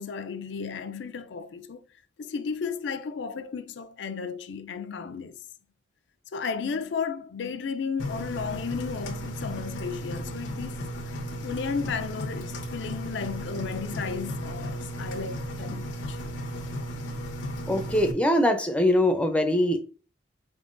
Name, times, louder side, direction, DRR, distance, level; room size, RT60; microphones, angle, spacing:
voice 1, 0.0-1.8 2.2-5.4 6.3-10.8 11.1-16.2, left 5 dB, 70° left, 0.4 m, -34 dB
Engine, 8.0-18.1, equal, 90° left, 0.8 m, -35 dB
voice 2, 17.7-19.8, left 1 dB, 5° left, 0.5 m, -22 dB
4.5 x 3.6 x 2.5 m
head